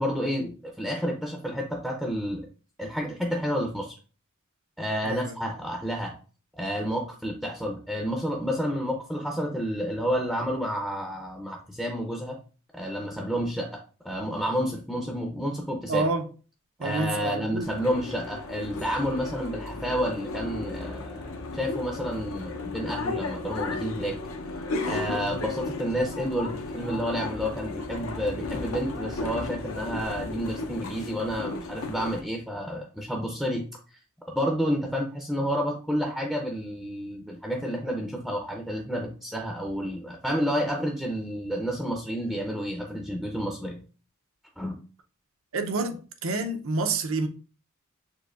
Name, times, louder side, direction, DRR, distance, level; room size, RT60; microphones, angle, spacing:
voice 1, 0.0-2.5 2.8-4.0 4.8-6.1 6.5-12.4 12.7-16.1 16.8-24.2 24.8-34.0 34.3-43.8 44.6-44.8, equal, ahead, 0.5 m, -30 dB
voice 2, 5.0-5.4 15.9-16.2 16.8-17.7 25.2-25.4 45.5-47.3, right 3 dB, 70° right, 0.6 m, -28 dB
sound 1, 17.6-32.2, left 3 dB, 70° left, 0.7 m, -34 dB
6.5 x 2.6 x 2.4 m
head